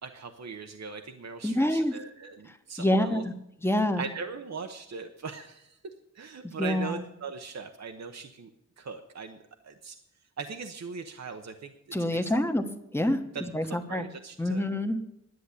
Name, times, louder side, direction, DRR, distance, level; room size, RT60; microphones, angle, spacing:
voice 1, 0.0-3.2 4.0-5.8 6.1-8.5 8.8-10.0 10.4-12.4 13.3-14.6, right 5 dB, 65° right, 5 dB, 0.9 m, -40 dB
voice 2, 1.4-1.9 2.5-3.3 3.6-4.0 6.4-6.9 11.9-12.6 12.9-14.1 14.4-15.0, left 1 dB, 10° left, 6 dB, 1.2 m, -27 dB
11.0 x 10.0 x 8.3 m, 0.80 s
wide cardioid pair, 95°, 29 cm